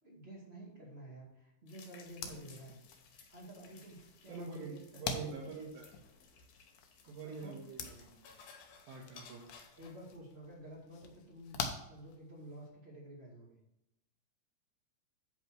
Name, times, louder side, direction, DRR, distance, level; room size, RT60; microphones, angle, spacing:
voice 1, 0.0-2.8 3.3-5.7 7.0-7.6 9.8-11.6 11.9-13.6, right 1 dB, 35° right, -3 dB, 1.0 m, -51 dB
sound 1, 1.7-10.2, left 5 dB, 65° left, 2.2 m, -60 dB
sound 2, 2.0-12.7, left 5 dB, 80° left, 1.7 m, -47 dB
voice 2, 4.3-5.9 7.1-8.3 8.9-9.5, right 5 dB, 80° right, -3 dB, 3.7 m, -46 dB
10.5 x 4.4 x 6.1 m, 0.85 s
omnidirectional pair, 4.9 m